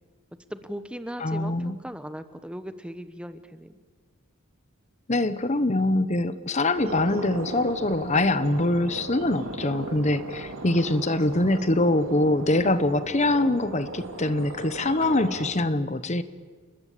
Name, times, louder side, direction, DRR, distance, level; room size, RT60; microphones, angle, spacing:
voice 1, 0.5-3.8, equal, 5° right, 11 dB, 1.0 m, -38 dB
voice 2, 1.2-1.8 5.1-16.2, left 2 dB, 30° left, 13 dB, 1.0 m, -24 dB
sound 1, 6.8-15.5, right 2 dB, 70° right, 4.1 m, -37 dB
29.5 x 21.0 x 8.4 m, 1.5 s
head